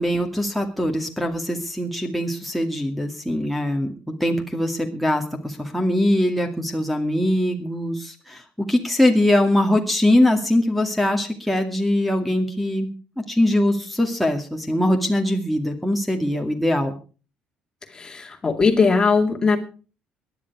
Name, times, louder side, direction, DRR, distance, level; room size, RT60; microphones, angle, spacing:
voice 1, 0.0-12.9 13.3-16.9, left 1 dB, ahead, 1 dB, 2.3 m, -22 dB
voice 2, 17.9-19.6, left 4 dB, 25° left, 5 dB, 2.4 m, -19 dB
17.5 x 11.0 x 4.8 m, 0.37 s
cardioid pair, 95°, 3 cm